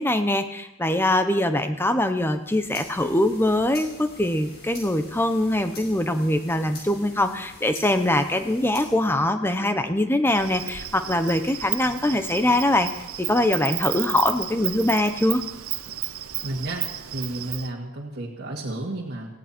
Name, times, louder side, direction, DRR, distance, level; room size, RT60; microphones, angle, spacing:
voice 1, 0.0-12.9 13.2-15.4, left 1 dB, 10° left, 9 dB, 0.8 m, -23 dB
sound 1, 2.4-9.1, left 2 dB, 50° left, 5.2 m, -44 dB
Insect, 10.3-17.7, right 14 dB, 75° right, 0.8 m, -33 dB
voice 2, 16.4-16.8 17.1-19.4, right 1 dB, 50° right, -5 dB, 2.1 m, -32 dB
18.5 x 15.5 x 4.4 m, 0.92 s
head